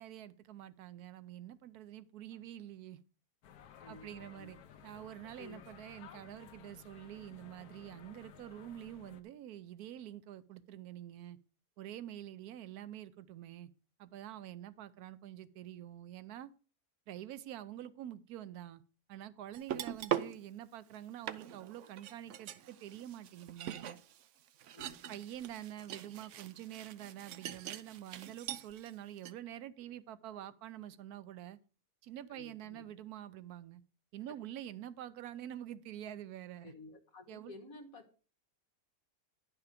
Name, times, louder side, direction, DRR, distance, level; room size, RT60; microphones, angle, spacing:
voice 1, 0.0-3.0 3.9-11.4 11.8-13.7 14.0-16.5 17.1-18.8 19.1-24.0 25.1-31.6 32.0-33.8 34.1-36.7 37.3-37.5, right 12 dB, 85° right, 1.1 m, -47 dB
sound 1, 3.4-9.2, left 9 dB, 85° left, 1.3 m, -56 dB
voice 2, 3.8-4.5 4.9-5.0 5.4-5.6 24.7-25.2 32.3-32.9 36.6-38.2, left 3 dB, 65° left, 1.9 m, -53 dB
sound 2, 19.5-20.4 20.9-21.0 21.3-28.9 29.2-29.3, right 10 dB, 65° right, 0.8 m, -42 dB
10.5 x 5.7 x 5.0 m
omnidirectional pair, 1.6 m